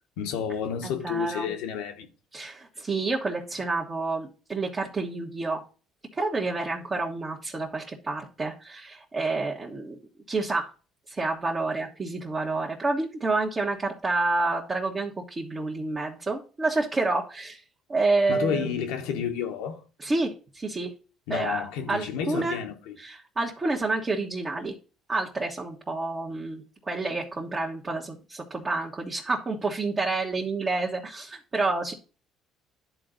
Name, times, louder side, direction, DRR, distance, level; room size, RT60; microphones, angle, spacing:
voice 1, 0.2-2.1 18.3-19.8 21.3-22.9, left 7 dB, 85° left, 1.3 m, -30 dB
voice 2, 0.8-1.5 2.3-5.6 6.1-10.0 10.3-10.7 11.1-17.6 17.9-18.7 20.0-20.9 21.3-22.6 23.0-24.7 25.1-31.9, right 3 dB, 30° right, 1.5 m, -29 dB
10.5 x 4.0 x 3.8 m
supercardioid pair, 80°, 0 cm